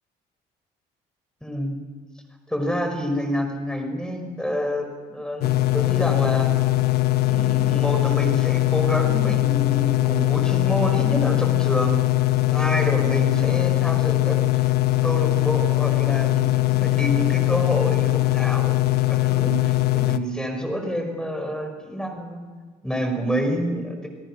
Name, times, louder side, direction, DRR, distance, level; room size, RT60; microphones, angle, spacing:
voice 1, 1.4-1.7 2.5-6.5 7.2-12.0 12.5-14.7 15.0-22.4 22.8-24.1, equal, 5° left, 4 dB, 5.2 m, -28 dB
sound 1, 5.4-20.2, left 18 dB, 70° left, 1.0 m, -21 dB
28.0 x 18.0 x 6.2 m, 1.5 s
cardioid pair, 110°, 17 cm